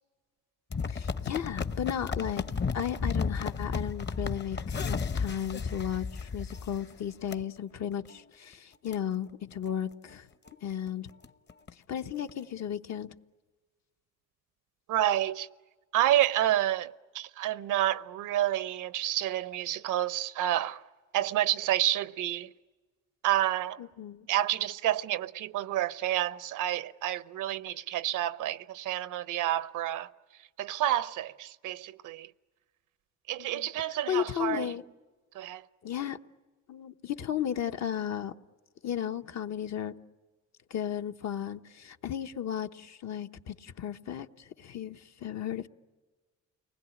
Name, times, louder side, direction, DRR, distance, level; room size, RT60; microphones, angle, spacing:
sound 1, 0.7-6.9 7.3-7.4 7.9-8.1 8.5-8.6 8.9-9.0 9.5-9.7 10.1-10.2 10.5-10.6 10.9-11.7 12.3-12.4, left 5 dB, 35° left, 1.0 m, -33 dB
voice 1, 0.9-2.4 2.7-10.3 10.6-11.1 11.9-13.1 23.8-24.3 33.4-33.7 34.1-34.8 35.8-36.2 36.7-38.3 38.8-39.9 40.7-45.7, left 9 dB, 60° left, 1.1 m, -34 dB
voice 2, 14.9-15.5 15.9-20.8 21.1-22.5 23.2-23.8 24.3-30.1 30.6-32.3 33.3-34.7 35.3-35.6, right 13 dB, 85° right, 0.8 m, -29 dB
30.0 x 20.5 x 9.9 m
cardioid pair, 90°, 30 cm